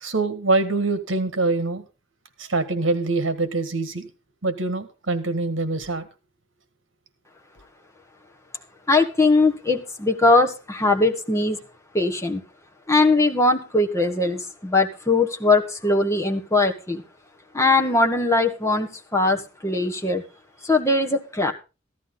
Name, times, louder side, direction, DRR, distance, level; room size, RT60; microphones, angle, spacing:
voice 1, 0.0-1.8 2.4-4.1 4.4-6.1, right 3 dB, 70° right, 10 dB, 1.7 m, -24 dB
voice 2, 8.9-11.6 11.9-12.4 12.9-17.0 17.5-20.2 20.6-21.5, left 2 dB, 15° left, 3 dB, 1.3 m, -20 dB
15.0 x 11.5 x 3.8 m, 0.30 s
head